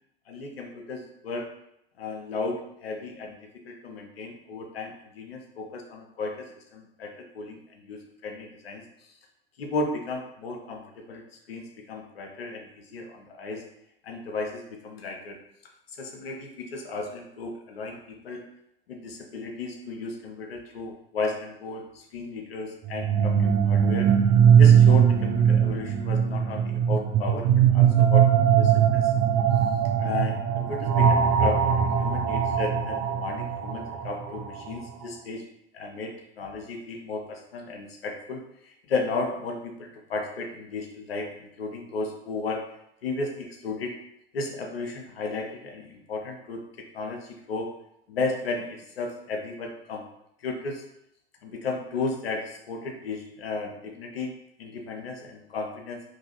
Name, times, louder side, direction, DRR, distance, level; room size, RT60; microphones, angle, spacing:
voice 1, 0.3-1.5 2.0-3.4 3.7-9.1 9.6-11.2 11.5-13.6 14.0-15.4 16.0-18.4 18.9-24.1 24.5-28.3 28.5-29.1 30.0-35.4 35.7-42.6 43.0-44.0 44.3-47.7 48.1-50.1 50.4-50.8 51.4-54.3 54.6-56.0, left 3 dB, 85° left, 2 dB, 0.5 m, -34 dB
sound 1, 22.9-34.7, right 8 dB, 40° right, 0.4 m, -20 dB
2.5 x 2.2 x 2.9 m, 0.78 s
figure-of-eight pair, 70°, 29 cm